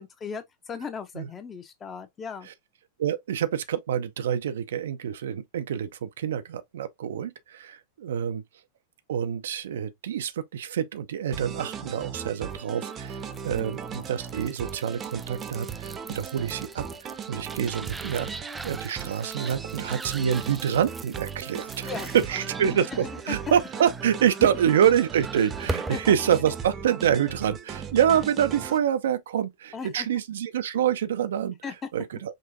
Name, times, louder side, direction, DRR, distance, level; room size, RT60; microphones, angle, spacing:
voice 1, 0.0-2.5 13.5-13.7 21.8-22.5 23.3-23.4 23.8-23.9 24.4-24.5 25.9-26.0 29.7-30.1 31.6-31.7, left 5 dB, 20° left, 1.0 m, -37 dB
voice 2, 3.0-8.4 9.1-22.9 23.3-31.6 31.9-32.4, right 9 dB, 60° right, 0.6 m, -26 dB
sound 1, 11.3-28.8, right 7 dB, 25° right, 0.8 m, -38 dB
sound 2, 12.5-26.1, right 3 dB, 10° right, 0.4 m, -41 dB
5.3 x 3.2 x 2.7 m
figure-of-eight pair, 90°, 0 cm